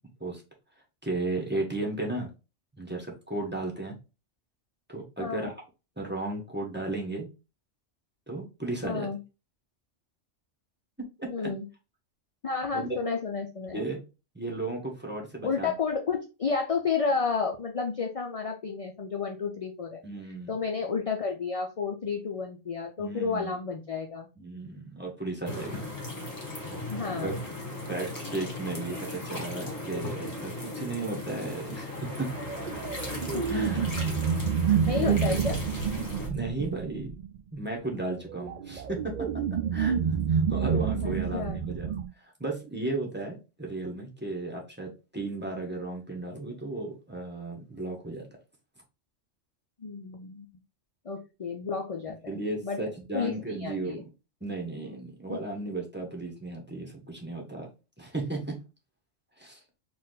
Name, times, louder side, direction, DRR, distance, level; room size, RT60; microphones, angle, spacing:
voice 1, 1.0-2.3 2.7-4.0 4.9-5.5 6.0-7.3 8.3-9.1 11.2-11.5 12.7-12.9 13.7-14.0 14.3-15.7 20.0-20.5 23.0-23.5 24.4-25.9 27.2-27.3 27.9-32.3 33.3-33.9 34.7-35.4 36.2-37.2 37.5-41.9 42.4-48.2 52.3-54.1 54.4-57.7 58.0-58.6 59.4-59.6, right 2 dB, 10° right, -1 dB, 1.1 m, -35 dB
voice 2, 5.2-5.5 8.8-9.2 11.3-11.7 12.4-13.9 15.4-20.0 20.5-24.3 26.9-27.4 33.3-34.1 34.9-35.6 41.0-41.6 49.8-50.5 51.0-52.8 53.1-53.3 53.6-54.0 55.3-55.4, left 5 dB, 45° left, 3 dB, 0.4 m, -31 dB
sound 1, 25.4-36.3, left 2 dB, 30° left, 1.7 m, -37 dB
sound 2, 32.2-37.4 38.3-42.1, right 7 dB, 65° right, 0.4 m, -28 dB
4.3 x 2.5 x 3.9 m, 0.29 s
omnidirectional pair, 1.3 m